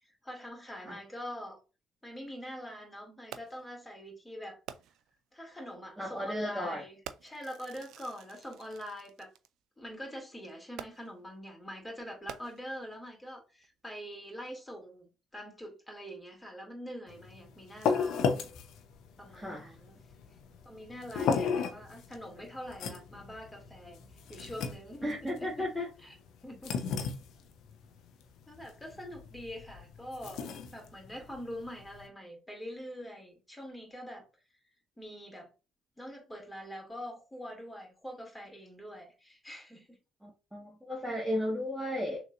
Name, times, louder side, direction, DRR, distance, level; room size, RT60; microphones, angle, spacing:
voice 1, 0.0-1.6 2.0-4.6 5.3-9.3 9.8-18.5 19.2-20.0 20.6-24.0 24.3-25.7 26.0-26.1 26.4-26.8 28.5-30.4 30.7-34.2 35.0-35.5 36.0-40.0, equal, 10° left, 2.5 m, -44 dB
Fireworks, 3.3-3.7 4.7-5.2 6.1-6.2 7.0-9.5 10.8-11.3 12.1-12.9 13.6-13.7, right 10 dB, 60° right, 0.4 m, -48 dB
voice 2, 6.0-6.8 19.3-19.8 25.0-25.9 40.2-42.2, left 1 dB, 5° right, 1.6 m, -34 dB
sound 1, 17.1-32.1, left 6 dB, 60° left, 0.8 m, -36 dB
6.3 x 3.0 x 2.6 m
figure-of-eight pair, 50°, 0 cm